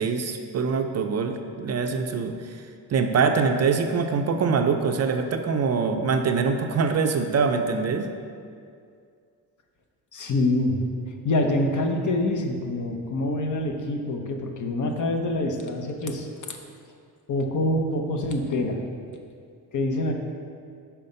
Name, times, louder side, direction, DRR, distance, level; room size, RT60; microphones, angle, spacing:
voice 1, 0.0-2.6 2.9-8.1, right 5 dB, 45° right, 6 dB, 0.5 m, -24 dB
voice 2, 10.1-10.8 11.2-16.3 17.3-18.8 19.7-20.1, left 1 dB, 55° left, 3 dB, 0.9 m, -25 dB
5.6 x 4.4 x 5.4 m, 2.3 s
cardioid pair, 90°, 37 cm